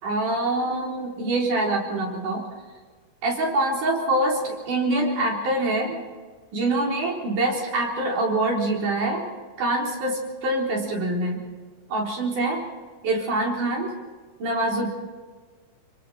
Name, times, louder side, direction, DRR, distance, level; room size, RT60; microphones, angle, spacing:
voice 1, 0.0-2.5 3.2-6.0 6.5-9.3 9.6-11.5 11.9-12.7 13.0-13.9 14.4-14.9, right 2 dB, 75° right, -1 dB, 5.5 m, -25 dB
26.5 x 24.0 x 4.4 m, 1.4 s
omnidirectional pair, 3.7 m